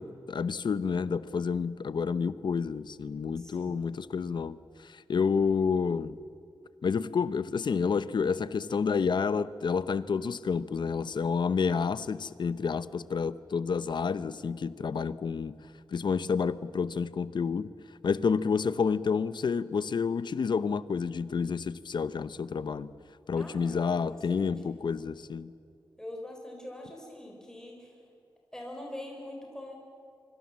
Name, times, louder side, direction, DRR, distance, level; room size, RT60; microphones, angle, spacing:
voice 1, 0.0-4.6 4.8-6.2 6.8-15.5 15.9-17.7 18.0-22.9 23.3-25.5, left 5 dB, 65° left, 16 dB, 0.8 m, -29 dB
voice 2, 3.4-3.8 23.3-24.5 26.0-28.0 28.5-29.7, left 1 dB, 5° left, 1 dB, 4.0 m, -43 dB
25.0 x 24.5 x 7.5 m, 2.4 s
wide cardioid pair, 135°, 9 cm